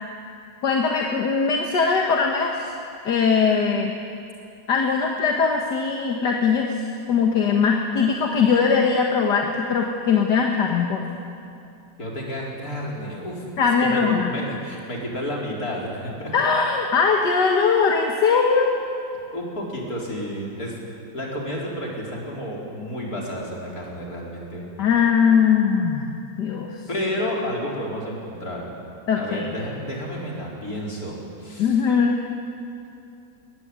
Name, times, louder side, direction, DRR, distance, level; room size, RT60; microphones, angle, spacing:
voice 1, 0.6-2.7 3.1-3.9 4.7-6.7 7.1-11.1 13.6-14.3 16.3-18.8 24.8-26.1 26.4-26.8 29.1-29.5 31.6-32.2, left 5 dB, 75° left, 1 dB, 2.1 m, -20 dB
voice 2, 12.0-13.4 13.8-14.0 14.3-16.3 19.3-24.7 26.9-28.7 29.2-31.8, equal, 55° left, -3 dB, 5.2 m, -31 dB
23.0 x 19.5 x 9.8 m, 2.6 s
omnidirectional pair, 1.8 m